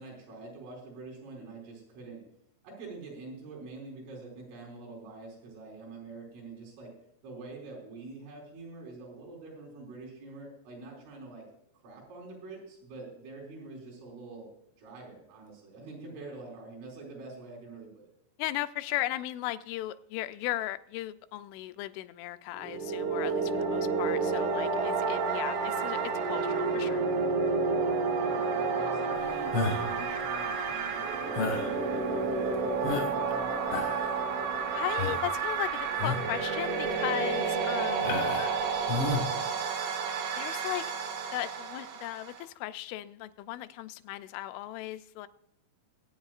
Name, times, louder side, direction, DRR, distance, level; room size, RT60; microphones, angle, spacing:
voice 1, 0.0-2.2 2.6-6.9 7.2-11.4 11.8-14.5 14.8-18.1 23.6-23.8 28.1-33.6, right 3 dB, 85° right, -3 dB, 6.7 m, -45 dB
voice 2, 18.4-27.0 34.7-38.2 40.4-41.0 41.3-45.3, left 15 dB, 85° left, 11 dB, 2.9 m, -36 dB
sound 1, 22.6-42.4, right 5 dB, 65° right, 2.0 m, -30 dB
sound 2, 29.5-30.0 31.3-31.7 32.3-32.4 32.8-33.3 33.6-34.1 35.0-35.3 35.9-36.3 36.8-37.0 38.0-38.6 38.9-39.3, left 3 dB, 70° left, 1.3 m, -31 dB
23.0 x 8.9 x 2.4 m, 0.77 s
omnidirectional pair, 5.5 m